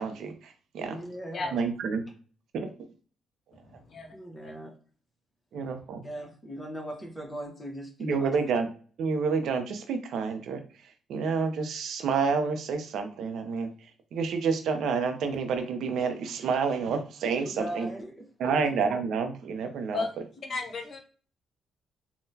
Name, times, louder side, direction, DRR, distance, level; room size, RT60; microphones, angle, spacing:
voice 1, 0.0-1.0 1.5-2.0 2.5-2.7 5.5-6.0 8.0-8.7 9.0-10.6 11.1-13.7 14.1-17.9 18.4-20.0, right 5 dB, 70° right, 7 dB, 0.5 m, -29 dB
voice 2, 0.8-1.6 4.1-4.7 6.0-8.4 17.4-18.6, equal, 10° left, 0 dB, 0.9 m, -39 dB
voice 3, 3.7-4.1 4.4-4.5 5.5-5.9 19.9-20.1 20.4-21.0, left 3 dB, 50° left, 4 dB, 0.6 m, -35 dB
3.7 x 2.1 x 2.7 m, 0.40 s
cardioid pair, 90°, 0 cm